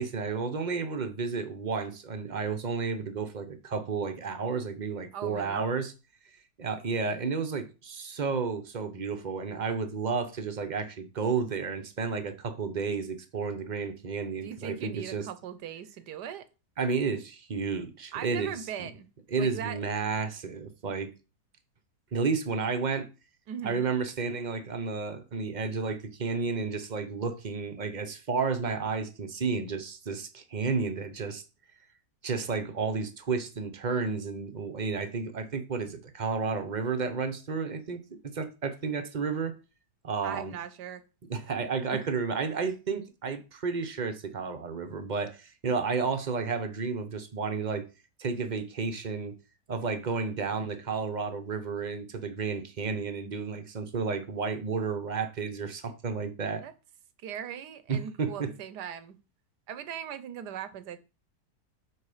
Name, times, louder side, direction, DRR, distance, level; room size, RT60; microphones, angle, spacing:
voice 1, 0.0-5.9 6.6-15.3 16.8-18.9 19.3-21.1 22.1-23.1 23.6-31.4 32.2-39.5 40.0-40.5 41.3-47.9 48.2-49.3 49.7-56.6 57.9-58.5, right 5 dB, 40° right, 0.7 m, -32 dB
voice 2, 5.1-5.6 14.4-16.5 18.1-19.1 19.4-19.8 23.5-23.8 40.2-41.0 41.9-42.1 56.6-56.7 57.2-59.2 59.7-61.0, right 9 dB, 85° right, 1.4 m, -39 dB
7.2 x 4.4 x 4.9 m
omnidirectional pair, 1.8 m